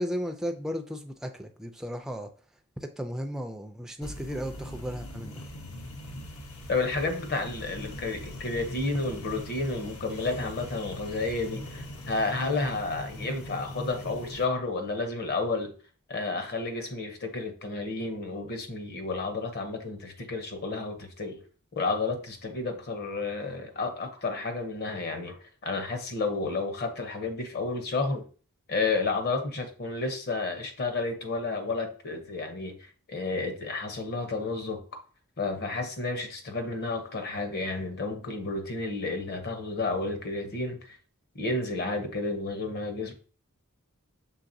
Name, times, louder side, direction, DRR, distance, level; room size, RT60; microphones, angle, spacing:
voice 1, 0.0-2.3 2.8-5.5, equal, ahead, 0.3 m, -35 dB
sound 1, 4.0-14.4, equal, 75° left, 0.9 m, -41 dB
voice 2, 6.7-15.7 16.1-21.4 21.8-28.3 28.7-35.0 35.4-41.0 41.3-43.1, left 3 dB, 45° left, 0.8 m, -31 dB
5.7 x 3.3 x 2.6 m
head